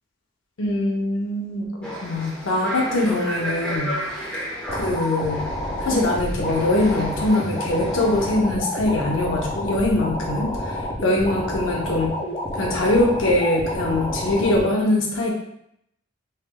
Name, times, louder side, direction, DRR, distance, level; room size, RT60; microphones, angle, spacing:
voice 1, 0.6-4.0 4.3-5.5 5.8-12.1 12.5-15.3, left 1 dB, 80° left, -2 dB, 0.7 m, -23 dB
sound 1, 1.8-8.4, equal, 5° left, 0.8 m, -33 dB
sound 2, 4.7-14.7, left 1 dB, 30° left, 0.4 m, -29 dB
3.2 x 2.9 x 2.2 m, 0.74 s
head